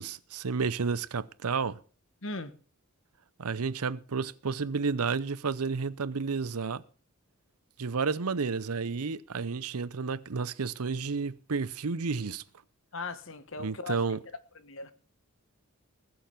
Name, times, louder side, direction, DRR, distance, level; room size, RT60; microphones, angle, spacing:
voice 1, 0.0-1.8 3.4-6.8 7.8-12.4 13.6-14.2, right 5 dB, 85° right, 0.7 m, -31 dB
voice 2, 2.2-2.5 12.9-14.0 14.6-14.9, left 3 dB, 60° left, 1.3 m, -38 dB
20.0 x 7.1 x 5.9 m
head